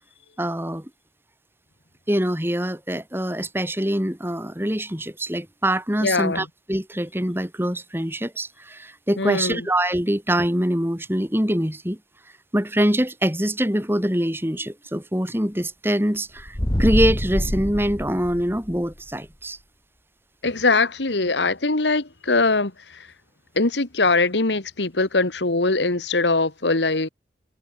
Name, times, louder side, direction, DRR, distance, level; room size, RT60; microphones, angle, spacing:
voice 1, 0.4-0.9 2.1-12.0 12.5-19.6, right 1 dB, 15° right, 3.9 m, -24 dB
voice 2, 6.0-6.5 9.2-9.6 20.4-23.1 23.6-27.1, left 3 dB, 85° left, 1.9 m, -22 dB
sound 1, 16.4-18.9, left 1 dB, 20° left, 1.4 m, -25 dB
head